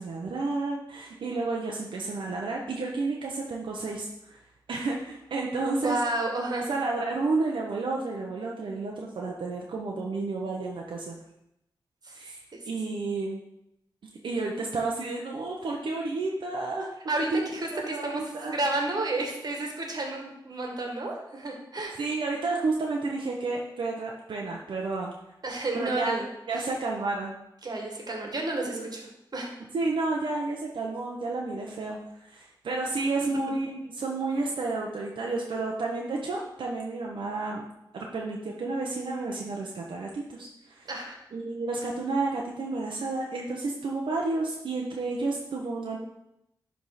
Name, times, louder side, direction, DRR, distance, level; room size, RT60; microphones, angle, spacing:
voice 1, 0.0-4.4 4.7-6.0 6.5-11.2 12.1-12.4 12.7-13.4 14.2-16.9 17.2-18.5 22.0-25.1 25.8-26.2 26.5-27.3 28.7-28.9 29.7-37.6 37.9-40.9 41.3-46.0, right 3 dB, 85° right, -1 dB, 0.8 m, -31 dB
voice 2, 5.8-6.7 12.0-12.2 12.5-12.6 17.1-18.2 18.5-22.0 25.4-26.3 26.6-26.7 27.6-29.5 40.9-41.2, right 2 dB, 55° right, 1 dB, 1.7 m, -31 dB
10.5 x 3.6 x 4.1 m, 0.85 s
wide cardioid pair, 75°, 8 cm